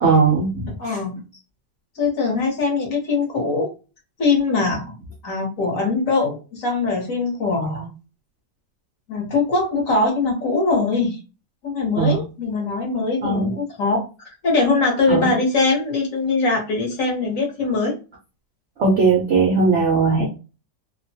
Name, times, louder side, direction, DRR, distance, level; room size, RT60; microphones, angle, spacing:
voice 1, 0.0-1.0 11.9-12.2 13.2-13.5 15.1-15.3 18.8-20.3, right 4 dB, 70° right, -1 dB, 0.6 m, -18 dB
voice 2, 0.8-1.2 1.9-3.7 4.2-4.9 5.2-7.9 9.1-11.2 11.6-14.0 14.4-17.9, left 3 dB, 55° left, -1 dB, 1.2 m, -22 dB
2.9 x 2.1 x 2.7 m, 0.32 s
omnidirectional pair, 1.9 m